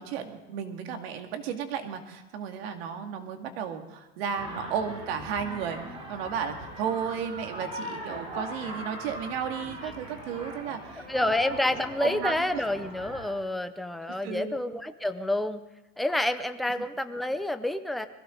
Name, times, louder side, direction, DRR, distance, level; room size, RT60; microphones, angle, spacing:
voice 1, 0.0-11.3 11.6-12.3 14.1-14.5, right 7 dB, 85° right, 5 dB, 2.1 m, -34 dB
sound 1, 4.3-13.3, right 1 dB, 20° right, 7.2 m, -40 dB
voice 2, 11.1-15.6 16.0-18.1, left 1 dB, ahead, 8 dB, 0.4 m, -28 dB
21.5 x 15.5 x 3.8 m, 1.1 s
supercardioid pair, 155°, 30 cm